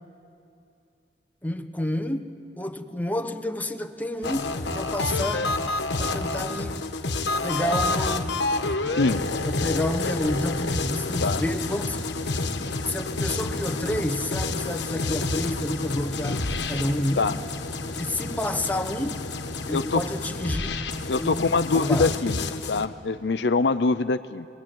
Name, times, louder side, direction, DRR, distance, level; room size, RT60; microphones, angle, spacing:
voice 1, 1.4-5.5 6.0-6.8 7.4-8.4 9.5-12.0 12.9-17.3 17.8-19.2 19.7-20.8 21.2-22.2, left 1 dB, 10° left, 1.1 m, -30 dB
sound 1, 4.2-22.9, left 3 dB, 90° left, 1.3 m, -29 dB
voice 2, 19.7-20.0 21.1-22.4 22.7-24.5, left 3 dB, 70° left, 0.6 m, -23 dB
26.5 x 21.0 x 9.0 m
head